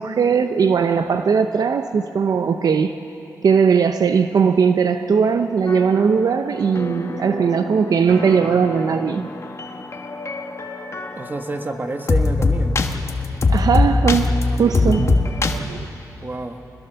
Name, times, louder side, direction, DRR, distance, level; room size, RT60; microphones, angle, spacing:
voice 1, 0.0-2.9 3.4-9.3 13.5-15.9, right 6 dB, 70° right, 8 dB, 0.7 m, -19 dB
sound 1, 5.7-15.6, left 3 dB, 45° left, 1.5 m, -23 dB
voice 2, 11.1-12.8 16.2-16.6, right 2 dB, 30° right, 6 dB, 1.7 m, -28 dB
25.0 x 21.0 x 7.0 m, 3.0 s
cardioid pair, 75°, 7 cm